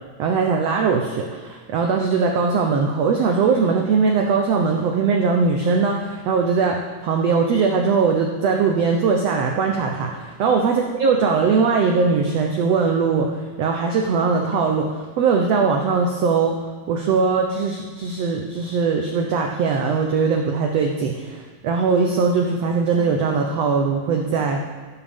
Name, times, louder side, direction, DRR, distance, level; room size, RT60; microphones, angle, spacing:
voice 1, 0.2-16.5 16.9-24.6, right 5 dB, 85° right, 2 dB, 1.4 m, -20 dB
15.0 x 8.9 x 3.5 m, 1.4 s
omnidirectional pair, 3.9 m